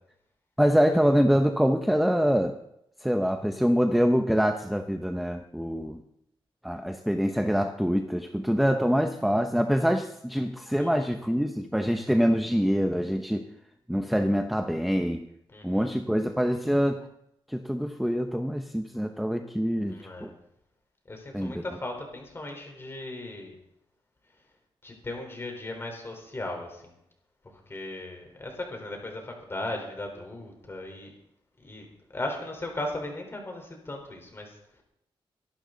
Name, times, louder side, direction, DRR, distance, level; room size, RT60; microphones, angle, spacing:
voice 1, 0.6-2.5 3.0-6.0 6.6-13.4 13.9-15.3 15.6-17.1 17.5-20.3 21.3-21.6, equal, ahead, 5 dB, 0.8 m, -25 dB
voice 2, 10.8-11.2 15.5-15.9 19.9-20.3 21.1-23.6 24.8-26.9 27.4-31.1 31.6-31.9 32.1-34.8, left 1 dB, 25° left, 2 dB, 4.0 m, -37 dB
23.5 x 11.5 x 4.0 m, 0.79 s
wide cardioid pair, 130°, 9 cm